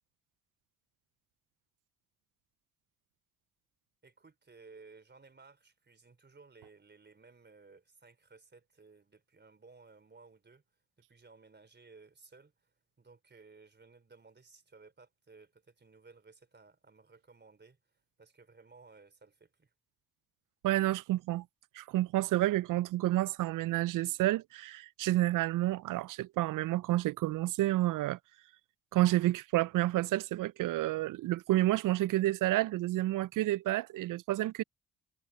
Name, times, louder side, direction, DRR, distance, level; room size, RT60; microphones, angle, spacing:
voice 1, 4.0-10.6 11.0-12.7 13.0-17.8 18.2-19.7, right 4 dB, 30° right, 4.1 m, -58 dB
voice 2, 20.6-21.4 21.8-28.2 28.9-34.6, right 16 dB, 65° right, 0.5 m, -30 dB
supercardioid pair, 60°, 34 cm